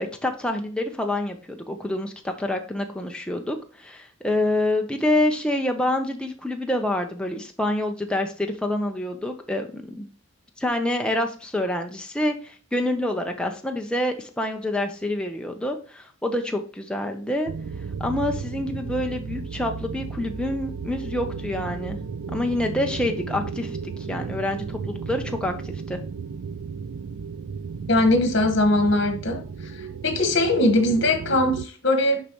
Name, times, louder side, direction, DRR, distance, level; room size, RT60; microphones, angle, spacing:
voice 1, 0.0-10.1 10.6-17.5 18.0-22.0 22.3-23.8 24.1-26.0, left 1 dB, 5° left, 0.5 m, -27 dB
sound 1, 17.5-31.7, right 5 dB, 85° right, 0.4 m, -34 dB
voice 2, 27.9-29.4 29.7-32.2, left 1 dB, 55° left, 1.4 m, -21 dB
6.7 x 5.2 x 3.0 m
head